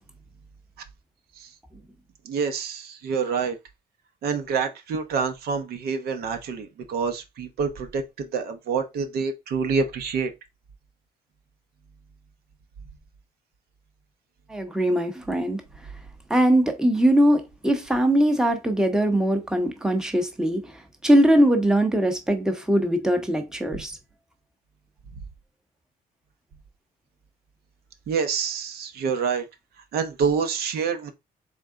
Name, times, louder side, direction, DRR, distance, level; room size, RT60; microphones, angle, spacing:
voice 1, 2.2-3.6 4.2-10.3 23.7-23.8 28.1-29.4 29.9-31.1, right 5 dB, 65° right, 0.8 m, -27 dB
voice 2, 14.5-15.6 16.3-20.6 21.0-24.0, right 1 dB, 5° right, 0.8 m, -21 dB
3.7 x 3.3 x 3.6 m
cardioid pair, 110°, 17 cm